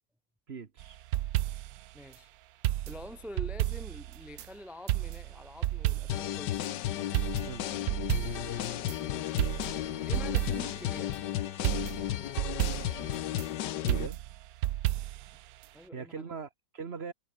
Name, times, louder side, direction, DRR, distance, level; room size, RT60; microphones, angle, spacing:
voice 1, 0.5-1.0 7.4-7.7 13.8-14.2 15.9-17.1, right 5 dB, 40° right, 1.3 m, -41 dB
sound 1, 0.8-1.8 2.6-4.5 4.9-6.3 6.6-6.7 7.1-9.0 9.4-10.8 11.1-11.2 11.6-13.5 13.9-15.3 15.6-15.7, right 14 dB, 70° right, 1.0 m, -32 dB
voice 2, 1.9-2.3 2.9-6.8 9.0-9.4 10.1-11.1 15.7-16.3, left 1 dB, ahead, 1.2 m, -46 dB
sound 2, 6.1-14.1, left 13 dB, 80° left, 1.4 m, -34 dB
omnidirectional pair, 1.9 m